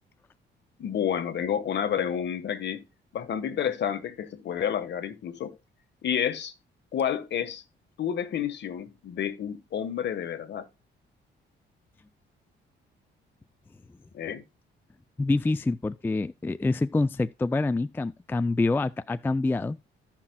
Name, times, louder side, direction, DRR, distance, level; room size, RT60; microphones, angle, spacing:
voice 1, 0.8-2.8 3.1-5.6 6.0-6.5 6.9-7.6 8.0-10.7 14.1-14.4, left 8 dB, 60° left, 1.3 m, -30 dB
voice 2, 15.2-19.8, left 3 dB, 10° left, 0.3 m, -26 dB
15.0 x 5.9 x 2.2 m
cardioid pair, 90°, 20 cm